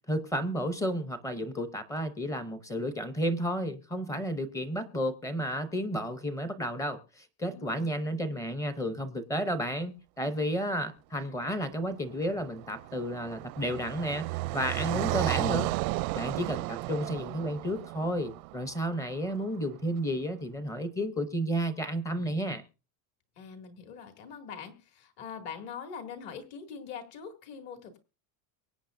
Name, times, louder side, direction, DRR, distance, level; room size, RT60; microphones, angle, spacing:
voice 1, 0.1-15.7 16.1-22.6, equal, 5° left, 10 dB, 0.6 m, -32 dB
voice 2, 7.5-7.9 14.9-15.2 23.4-28.0, left 6 dB, 55° left, 5 dB, 2.5 m, -43 dB
Car passing by, 12.1-19.3, right 21 dB, 85° right, 0.6 m, -34 dB
23.5 x 8.7 x 2.6 m, 0.32 s
cardioid pair, 170°, 49 cm